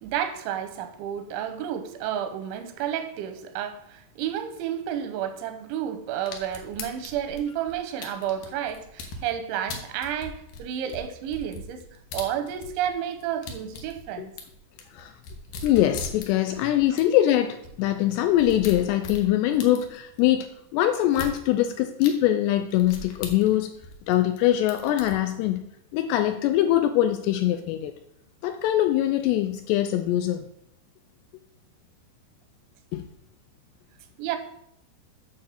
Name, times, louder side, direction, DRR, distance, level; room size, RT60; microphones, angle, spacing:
voice 1, 0.0-11.8 12.1-14.3 16.4-16.5 34.2-34.4, right 10 dB, 90° right, 3.2 m, -31 dB
sound 1, 6.3-9.2 9.7-12.9 13.2-16.6 17.0-17.1 17.3-17.4 17.6-17.7 18.1-20.2 21.1-21.3 22.0-22.1 22.7-24.4 24.7-25.1, left 3 dB, 70° left, 2.4 m, -39 dB
voice 2, 15.6-23.8 24.1-27.9 28.4-30.4 32.9-33.1, left 12 dB, 85° left, 2.4 m, -23 dB
8.8 x 3.8 x 6.9 m
omnidirectional pair, 5.1 m